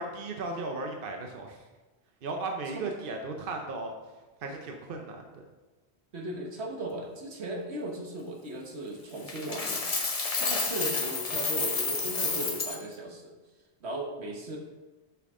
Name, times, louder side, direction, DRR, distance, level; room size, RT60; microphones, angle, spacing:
voice 1, 0.0-1.6 2.2-3.9 4.4-5.4, right 3 dB, 60° right, 3 dB, 0.9 m, -36 dB
voice 2, 6.1-9.8 10.4-13.3 13.8-14.6, right 1 dB, 75° right, 1 dB, 1.5 m, -37 dB
Coin (dropping), 9.3-12.8, left 4 dB, 35° left, 0.8 m, -30 dB
7.8 x 5.8 x 3.7 m, 1.2 s
omnidirectional pair, 1.1 m